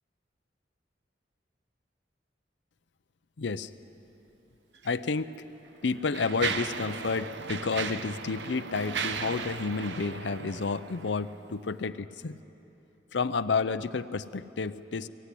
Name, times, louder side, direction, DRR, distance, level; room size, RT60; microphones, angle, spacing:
voice 1, 3.4-3.7 4.8-5.3 5.8-12.3 13.1-15.1, left 4 dB, 80° left, 11 dB, 0.6 m, -30 dB
Mechanisms, 4.7-4.9 5.6-11.4, right 5 dB, 75° right, 0.8 m, -36 dB
24.0 x 15.0 x 10.0 m, 2.9 s
head